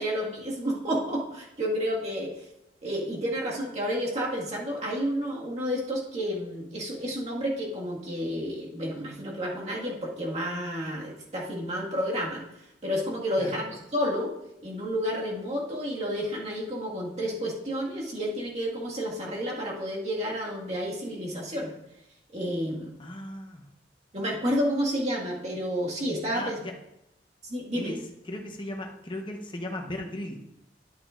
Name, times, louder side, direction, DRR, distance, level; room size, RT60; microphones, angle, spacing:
voice 1, 0.0-2.5 2.8-12.4 12.8-14.3 14.6-21.7 22.3-22.9 24.1-26.6 27.5-28.0, equal, 40° right, -4 dB, 1.9 m, -30 dB
voice 2, 23.0-23.6 26.3-26.7 27.7-30.4, left 1 dB, 30° left, 2 dB, 1.0 m, -37 dB
11.0 x 8.5 x 2.5 m, 0.84 s
head